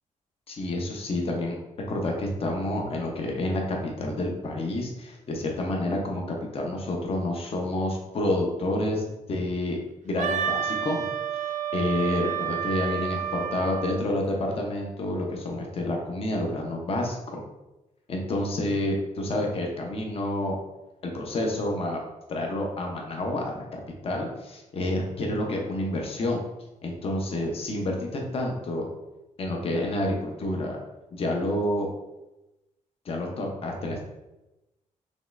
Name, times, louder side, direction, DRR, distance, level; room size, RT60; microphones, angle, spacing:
voice 1, 0.5-1.6 1.9-9.8 10.0-11.0 11.7-17.4 18.1-20.6 21.0-22.0 22.3-26.4 26.8-28.9 29.4-30.8 31.1-31.9 33.0-34.0, left 1 dB, 50° left, 0 dB, 0.8 m, -29 dB
Wind instrument woodwind instrument, 10.2-14.0, right 8 dB, 75° right, 0.5 m, -30 dB
5.2 x 3.1 x 2.5 m, 0.99 s
cardioid pair, 125°, 13 cm